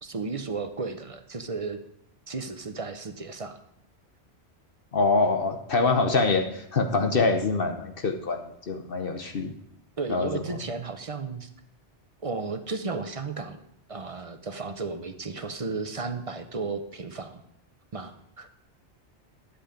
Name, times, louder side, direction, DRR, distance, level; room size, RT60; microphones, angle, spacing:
voice 1, 0.0-1.8 2.3-3.6 10.0-11.5 12.2-13.6 13.9-17.4 17.9-18.5, right 4 dB, 35° right, 9 dB, 0.7 m, -34 dB
voice 2, 4.9-9.5 10.1-10.6, left 3 dB, 55° left, 5 dB, 1.0 m, -25 dB
11.5 x 8.1 x 5.1 m, 0.77 s
omnidirectional pair, 1.2 m